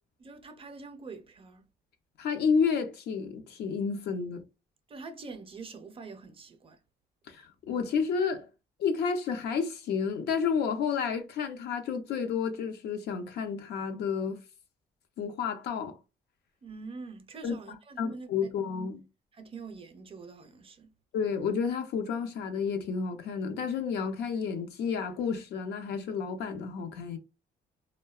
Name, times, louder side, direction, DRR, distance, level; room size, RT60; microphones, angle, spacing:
voice 1, 0.2-1.7 4.9-6.8 16.6-18.5 19.3-20.9, right 4 dB, 30° right, 0.5 m, -45 dB
voice 2, 2.2-4.4 7.3-8.5 8.8-14.4 15.2-15.9 17.4-17.6 18.0-19.0 21.1-27.2, left 6 dB, 75° left, 0.5 m, -31 dB
2.7 x 2.1 x 2.3 m
cardioid pair, 95°, 17 cm